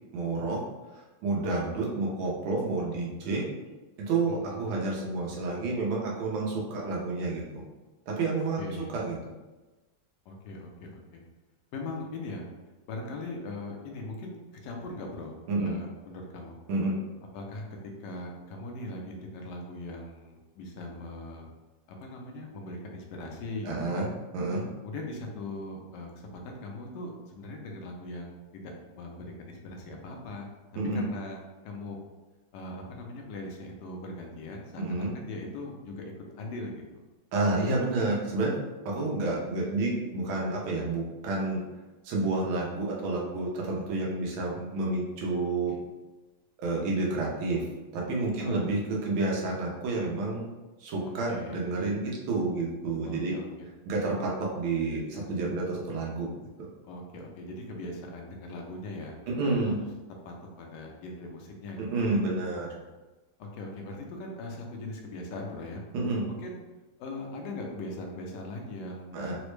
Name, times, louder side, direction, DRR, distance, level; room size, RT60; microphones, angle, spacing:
voice 1, 0.1-0.6 0.9-3.5 4.0-7.6 8.1-9.2 15.5-15.7 16.7-17.0 23.6-24.1 24.3-24.7 30.8-31.0 34.8-35.1 37.3-38.5 38.8-41.6 42.0-45.8 46.6-47.7 47.9-50.5 50.8-53.4 53.9-56.3 59.3-59.8 61.8-62.8 65.9-66.3 69.1-69.4, right 3 dB, 80° right, -2 dB, 1.6 m, -29 dB
voice 2, 4.3-4.6 8.6-8.9 10.3-11.2 11.7-12.4 12.9-16.6 17.3-17.6 18.0-21.5 21.9-24.1 24.8-30.5 30.9-31.4 31.6-32.0 32.5-36.8 48.4-48.7 51.0-51.6 53.0-53.5 56.9-59.2 59.4-59.7 60.2-62.1 63.4-65.8 66.3-66.6 67.0-69.3, left 2 dB, 70° left, 1 dB, 1.1 m, -40 dB
3.9 x 2.1 x 3.1 m, 1.1 s
omnidirectional pair, 2.2 m